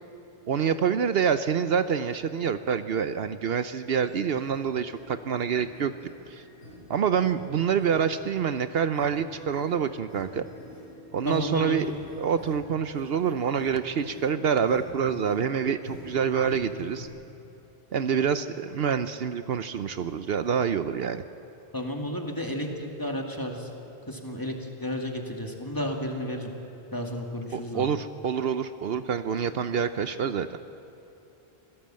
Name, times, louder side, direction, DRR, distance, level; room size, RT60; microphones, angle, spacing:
voice 1, 0.5-5.9 6.3-6.4 6.9-10.4 11.1-11.9 12.2-17.1 17.9-21.2 27.5-30.6, right 7 dB, 65° right, 11 dB, 0.9 m, -26 dB
sound 1, 4.0-8.4 8.8-17.1, left 1 dB, 80° left, 6.4 m, -46 dB
voice 2, 11.2-11.8 21.7-23.7 24.1-26.5 26.9-27.9, left 1 dB, 20° left, 1 dB, 2.3 m, -32 dB
25.5 x 17.0 x 7.6 m, 3.0 s
omnidirectional pair, 1.1 m